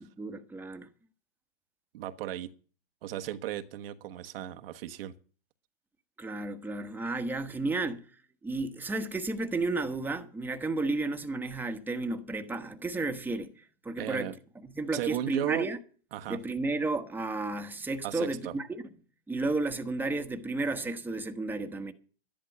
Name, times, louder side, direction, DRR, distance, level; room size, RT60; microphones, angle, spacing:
voice 1, 0.2-0.9 6.2-8.1 8.4-14.3 14.5-15.8 16.3-18.8 19.3-21.9, right 3 dB, 5° right, 1.2 m, -32 dB
voice 2, 1.9-2.5 3.0-5.1 14.0-14.3 14.9-15.7 16.1-16.4 18.0-18.5, right 12 dB, 70° right, 1.2 m, -35 dB
12.5 x 11.0 x 6.0 m
hypercardioid pair, 125°, 30 cm